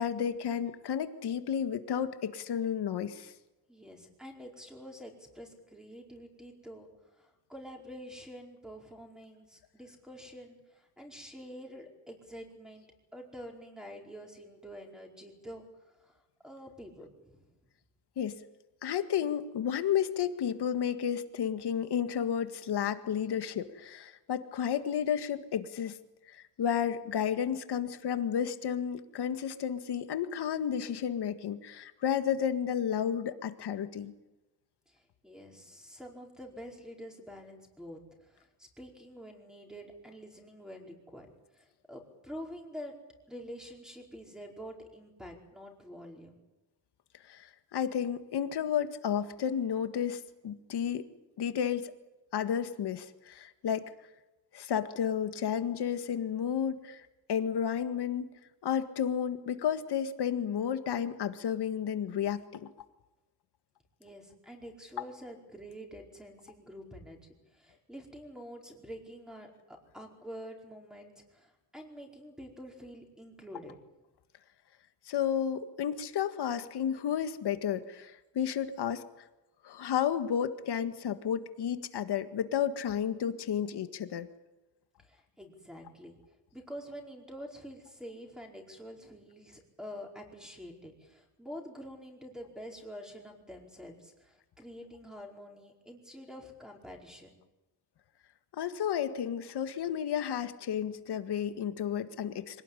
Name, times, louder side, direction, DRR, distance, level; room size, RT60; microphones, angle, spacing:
voice 1, 0.0-3.3 18.2-18.4 18.8-26.0 26.3-34.1 47.3-51.1 51.4-51.9 52.3-53.9 54.5-57.0 57.3-58.3 58.6-62.7 75.1-79.0 79.6-84.3 98.5-102.6, left 8 dB, 70° left, 9 dB, 1.9 m, -32 dB
voice 2, 3.7-12.9 13.1-17.5 34.9-41.3 41.5-43.0 43.3-46.4 64.0-73.7 85.0-86.1 86.5-97.4, equal, ahead, 1 dB, 4.8 m, -47 dB
25.0 x 18.0 x 9.9 m, 1.0 s
wide cardioid pair, 150°, 42 cm